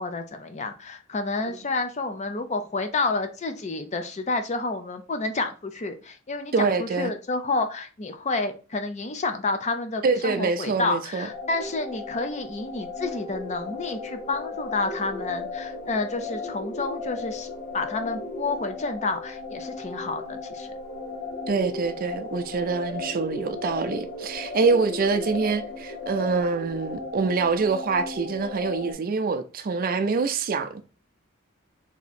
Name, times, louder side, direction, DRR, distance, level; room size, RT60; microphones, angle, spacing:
voice 1, 0.0-17.5 17.7-20.7, left 3 dB, 35° left, 0.5 m, -29 dB
voice 2, 6.5-7.1 10.0-11.3 21.5-30.8, right 4 dB, 45° right, 0.4 m, -25 dB
sound 1, 11.3-28.9, left 3 dB, 60° left, 1.0 m, -36 dB
3.5 x 2.8 x 4.1 m
head